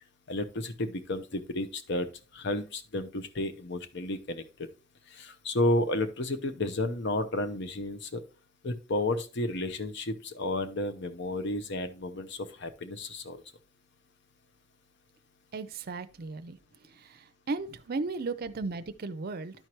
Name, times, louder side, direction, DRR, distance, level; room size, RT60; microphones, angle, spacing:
voice 1, 0.3-2.1 2.3-4.7 5.1-8.2 8.6-13.4, left 1 dB, 60° left, 0.8 m, -32 dB
voice 2, 15.5-16.6 17.5-19.5, right 3 dB, 50° right, 0.5 m, -35 dB
12.0 x 4.6 x 3.0 m
head